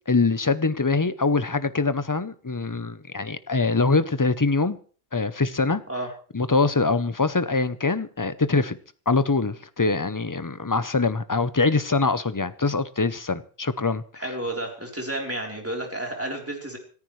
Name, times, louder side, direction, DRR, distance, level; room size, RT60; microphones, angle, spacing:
voice 1, 0.1-4.8 5.1-5.8 6.3-8.8 9.1-14.0, left 3 dB, 20° left, 0.6 m, -23 dB
voice 2, 14.1-16.8, right 1 dB, 10° right, 3.7 m, -31 dB
26.5 x 14.5 x 3.2 m
omnidirectional pair, 1.1 m